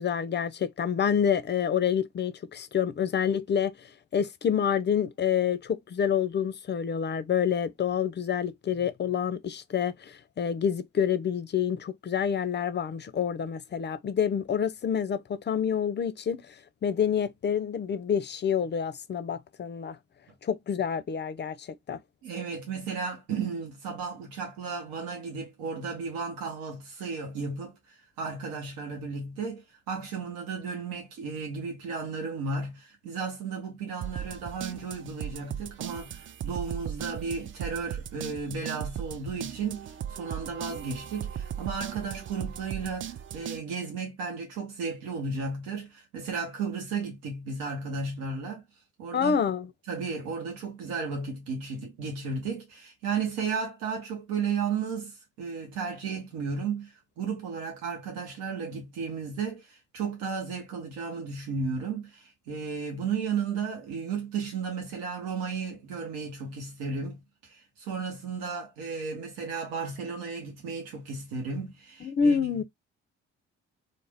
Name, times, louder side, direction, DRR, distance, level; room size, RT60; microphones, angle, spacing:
voice 1, 0.0-3.8 4.1-16.5 16.8-20.0 20.4-22.0 49.1-49.7 72.0-72.6, left 7 dB, 30° left, 0.5 m, -28 dB
voice 2, 22.2-48.6 49.0-49.4 49.9-72.6, right 5 dB, 80° right, 0.9 m, -34 dB
sound 1, 34.0-43.6, right 9 dB, 35° right, 0.4 m, -37 dB
2.4 x 2.0 x 3.3 m
hypercardioid pair, 50°, 34 cm